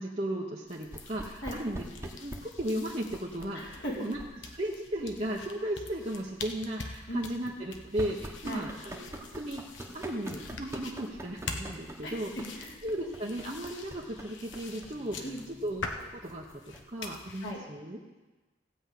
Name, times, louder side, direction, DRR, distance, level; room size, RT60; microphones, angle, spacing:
voice 1, 0.0-4.2 4.5-9.6 9.9-12.3 12.8-15.3 15.6-18.0, right 1 dB, 35° right, -3 dB, 1.0 m, -36 dB
sound 1, 0.7-17.5, left 3 dB, 85° left, 1.2 m, -45 dB
sound 2, 0.9-17.0, right 1 dB, 15° right, 1.2 m, -47 dB
voice 2, 3.5-4.1 7.1-7.2 8.4-8.7 12.0-12.8 15.2-15.4 17.4-17.6, equal, 70° left, -4 dB, 2.7 m, -38 dB
16.0 x 5.4 x 8.3 m, 1.2 s
head